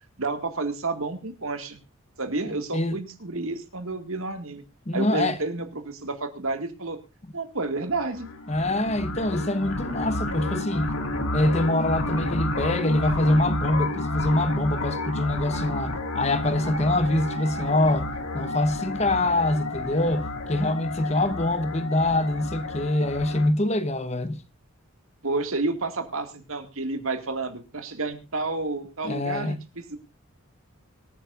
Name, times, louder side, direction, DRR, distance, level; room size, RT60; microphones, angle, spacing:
voice 1, 0.2-1.8 2.2-4.6 4.9-7.0 7.3-8.3 25.2-29.6 29.9-30.0, right 3 dB, 80° right, 2.3 m, -30 dB
voice 2, 2.4-3.0 4.9-5.4 8.5-10.9 11.3-24.4 29.0-29.6, left 1 dB, 30° left, 1.1 m, -25 dB
sound 1, 7.9-23.5, left 2 dB, 80° left, 2.3 m, -31 dB
25.0 x 9.3 x 2.6 m
head